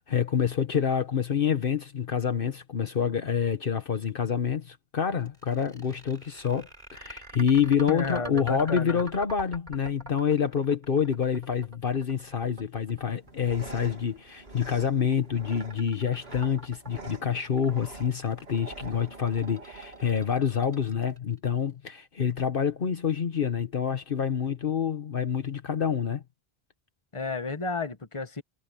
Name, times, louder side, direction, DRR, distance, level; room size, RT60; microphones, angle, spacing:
voice 1, 0.0-26.2, left 7 dB, 60° left, 1.2 m, -27 dB
sound 1, 5.3-21.4, equal, 50° right, 5.1 m, -45 dB
voice 2, 7.9-9.0 27.1-28.4, left 4 dB, 30° left, 1.5 m, -32 dB
sound 2, 13.2-21.2, right 3 dB, 85° right, 3.6 m, -46 dB
omnidirectional pair, 1.0 m